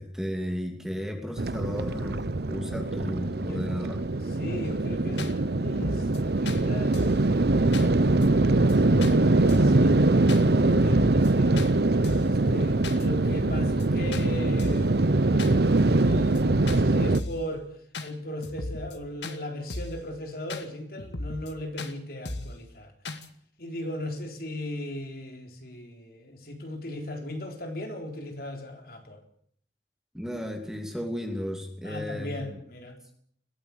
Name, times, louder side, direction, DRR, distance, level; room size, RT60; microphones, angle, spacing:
voice 1, 0.0-4.0 30.1-32.6, equal, 5° right, 3 dB, 2.9 m, -34 dB
sound 1, 1.4-17.2, right 2 dB, 60° right, 0.8 m, -23 dB
voice 2, 4.4-10.2 10.5-11.7 12.2-17.7 18.0-22.9 23.6-29.2 31.8-33.0, left 1 dB, 55° left, 4 dB, 3.8 m, -38 dB
sound 2, 4.6-4.7 5.2-5.3 5.7-6.2 6.5-6.6 6.9-7.2 7.7-7.9 8.2-8.7 9.0-9.2 9.5-9.8 10.3-10.4 10.8-11.3 11.6-11.7 12.0-12.4 12.8-13.1 13.3-13.9 14.1-14.3 14.6-14.9 15.4-15.5 15.9-16.4 16.7-16.8 17.1-17.5 17.9-18.1 18.4-19.0 19.2-19.4 19.7-20.0 20.5-20.6 21.0-21.5 21.8-21.9 22.3-22.6 23.1-23.3, left 2 dB, 75° left, 2.0 m, -36 dB
21.5 x 15.0 x 8.4 m, 0.65 s
head